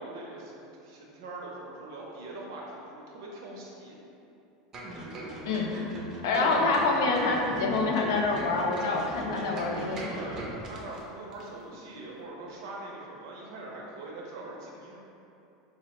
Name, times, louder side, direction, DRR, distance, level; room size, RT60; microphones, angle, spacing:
voice 1, 0.0-4.0 6.4-6.8 9.8-15.0, right 2 dB, 80° right, -3 dB, 0.6 m, -42 dB
sound 1, 4.7-11.0 11.3-11.4, right 2 dB, 25° right, 0.5 m, -39 dB
voice 2, 6.2-10.0, left 3 dB, 80° left, 0 dB, 0.4 m, -26 dB
4.0 x 2.1 x 2.9 m, 2.8 s
supercardioid pair, 140°, 2 cm